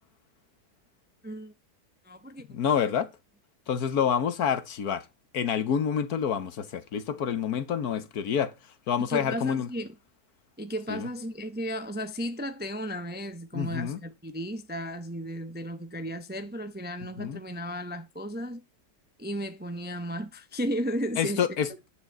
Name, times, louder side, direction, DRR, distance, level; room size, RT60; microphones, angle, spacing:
voice 1, 1.2-1.5 2.0-2.5 9.0-9.9 10.6-18.6 19.2-21.5, equal, 10° right, 0.6 m, -34 dB
voice 2, 2.5-3.1 3.7-5.0 5.3-8.5 8.9-9.7 10.9-11.1 13.5-14.0 17.2-17.4 21.2-21.7, left 8 dB, 65° left, 1.5 m, -27 dB
10.5 x 4.9 x 7.8 m
omnidirectional pair, 1.7 m